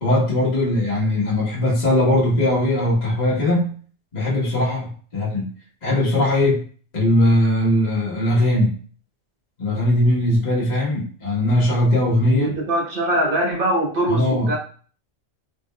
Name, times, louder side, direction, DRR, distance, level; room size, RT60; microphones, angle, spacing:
voice 1, 0.0-3.7 4.1-5.5 5.8-6.6 6.9-8.7 9.6-12.5 14.1-14.6, left 1 dB, 35° left, -6 dB, 1.2 m, -19 dB
voice 2, 12.3-14.6, right 1 dB, 45° right, -1 dB, 1.2 m, -22 dB
3.6 x 3.4 x 2.2 m, 0.43 s
omnidirectional pair, 1.3 m